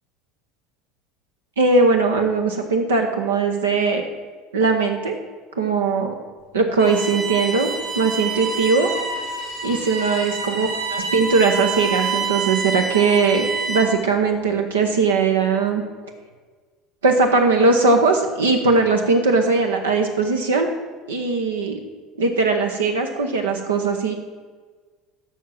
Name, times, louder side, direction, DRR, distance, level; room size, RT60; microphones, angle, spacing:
voice 1, 1.6-4.0 4.5-5.2 5.6-6.1 6.5-8.9 9.6-15.8 17.0-20.7 21.1-21.8 22.2-24.1, right 4 dB, 80° right, 3 dB, 0.8 m, -19 dB
Bowed string instrument, 6.8-14.0, right 4 dB, 60° right, 3.1 m, -27 dB
7.2 x 5.9 x 7.5 m, 1.5 s
hypercardioid pair, 70°, 0 cm